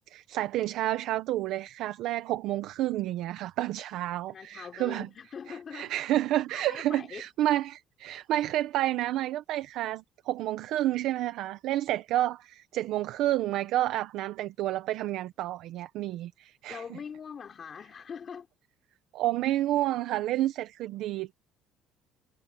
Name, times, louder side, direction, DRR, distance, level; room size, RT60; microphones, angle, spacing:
voice 1, 0.1-5.1 5.5-17.0 19.1-21.3, right 14 dB, 65° right, 1.0 m, -30 dB
voice 2, 4.3-6.1 6.5-7.2 16.7-18.5, left 7 dB, 30° left, 5.0 m, -42 dB
cardioid pair, 165°, 0 cm